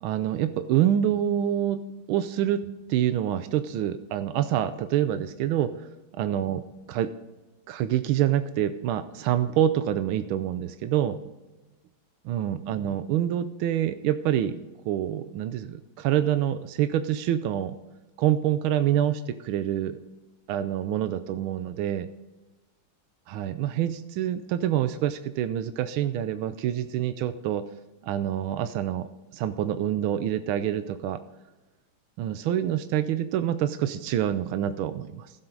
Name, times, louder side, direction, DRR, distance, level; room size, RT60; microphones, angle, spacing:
voice 1, 0.0-5.9 6.2-6.6 6.9-7.1 7.7-11.2 12.2-14.6 14.9-17.7 18.2-20.0 20.5-22.1 23.3-27.7 28.0-31.2 32.2-35.3, right 11 dB, 90° right, 11 dB, 1.5 m, -26 dB
15.0 x 8.0 x 3.9 m, 1.1 s
omnidirectional pair, 2.2 m